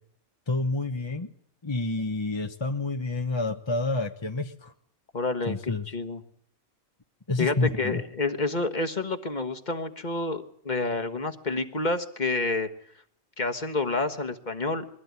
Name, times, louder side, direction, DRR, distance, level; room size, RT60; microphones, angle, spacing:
voice 1, 0.5-1.3 1.6-4.7 5.4-5.9 7.3-8.0, left 3 dB, 25° left, 5 dB, 1.0 m, -29 dB
voice 2, 5.1-6.2 7.4-12.7 13.4-14.8, left 3 dB, 40° left, 6 dB, 1.6 m, -29 dB
22.5 x 16.0 x 9.6 m, 0.62 s
omnidirectional pair, 1.2 m